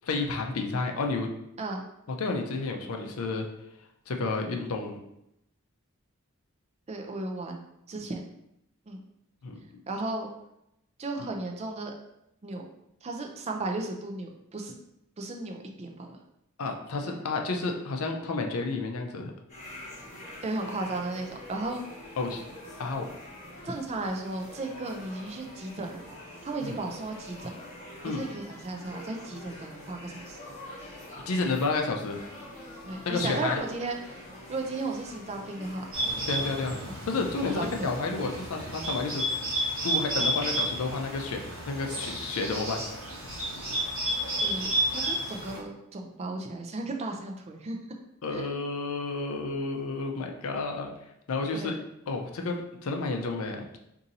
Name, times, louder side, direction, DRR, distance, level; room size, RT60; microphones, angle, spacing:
voice 1, 0.0-1.3 2.2-3.5 4.1-5.0 9.4-9.6 16.6-19.3 22.2-22.4 22.8-23.1 26.6-26.8 28.0-28.3 31.3-32.2 33.1-33.6 36.3-36.8 37.1-39.2 39.8-41.4 41.7-42.8 48.2-50.9 51.3-51.8 52.1-52.6 52.8-53.7, left 3 dB, 75° left, 3 dB, 0.5 m, -30 dB
voice 2, 6.9-8.3 8.9-9.0 9.9-10.3 11.0-11.9 12.4-12.6 13.0-14.7 15.2-16.2 17.1-17.2 20.4-21.8 23.6-26.1 26.4-27.6 28.0-30.4 32.9-34.2 34.5-35.9 37.5-37.9 44.4-47.8 48.3-48.6 51.5-51.7, right 2 dB, 30° right, 2 dB, 0.4 m, -35 dB
sound 1, 19.5-36.1, left 1 dB, 35° left, 1.0 m, -45 dB
Bird, 35.9-45.6, right 1 dB, 65° right, 1.1 m, -31 dB
2.7 x 2.6 x 4.0 m, 0.81 s
head